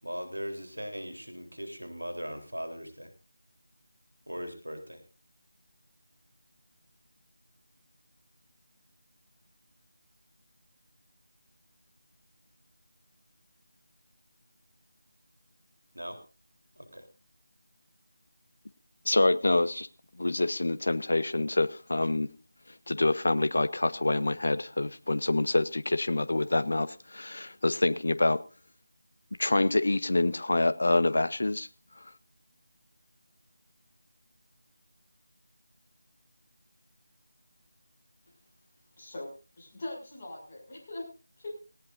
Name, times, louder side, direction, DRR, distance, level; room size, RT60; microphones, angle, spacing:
voice 1, 0.0-3.1 4.3-5.0 16.0-16.1 16.8-17.0, equal, 85° right, 5 dB, 3.8 m, -39 dB
voice 2, 19.1-19.9 20.2-22.3 22.9-28.4 29.4-31.7, left 2 dB, 55° left, 15 dB, 1.0 m, -26 dB
voice 3, 39.0-39.3 39.6-41.1 41.4-41.5, left 2 dB, 30° left, -2 dB, 6.7 m, -41 dB
18.5 x 18.0 x 2.7 m, 0.34 s
figure-of-eight pair, 165°, 0 cm